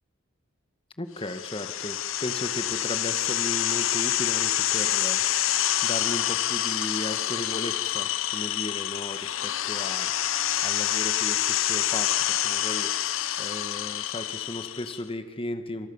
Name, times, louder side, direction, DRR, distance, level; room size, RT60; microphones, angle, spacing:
voice 1, 1.0-5.6 5.8-15.9, left 1 dB, 25° left, 8 dB, 2.0 m, -36 dB
sound 1, 1.2-15.0, left 12 dB, 75° left, 0.8 m, -27 dB
27.5 x 27.0 x 7.4 m, 1.3 s
head